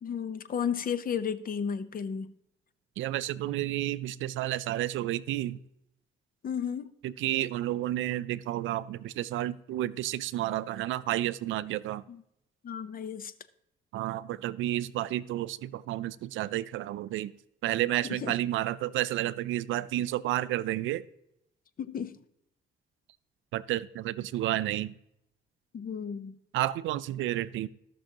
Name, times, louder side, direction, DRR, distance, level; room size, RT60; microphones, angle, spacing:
voice 1, 0.0-2.3 6.4-6.9 12.1-12.2 12.6-13.3 18.0-18.4 21.8-22.2 25.7-26.4, left 7 dB, 45° left, 14 dB, 0.7 m, -33 dB
voice 2, 3.0-5.6 7.0-12.0 13.9-17.3 17.6-21.0 23.5-25.0 26.5-27.7, right 14 dB, 80° right, 17 dB, 0.4 m, -31 dB
15.5 x 6.2 x 2.9 m, 0.81 s
cardioid pair, 90°, 20 cm